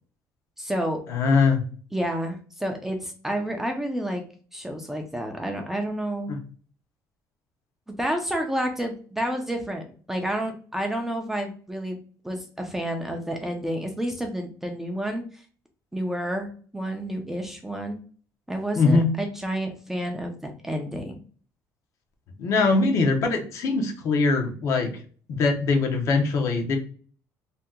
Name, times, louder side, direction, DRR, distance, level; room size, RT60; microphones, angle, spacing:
voice 1, 0.6-1.0 1.9-4.2 4.5-6.3 8.0-9.8 10.1-12.0 12.2-15.4 15.9-18.0 18.5-21.2, right 1 dB, 5° right, 3 dB, 0.5 m, -30 dB
voice 2, 1.1-1.7 6.3-6.4 18.8-19.1 22.4-24.9 25.3-26.8, left 4 dB, 50° left, 3 dB, 0.8 m, -22 dB
2.7 x 2.2 x 3.5 m, 0.42 s
cardioid pair, 145°, 7 cm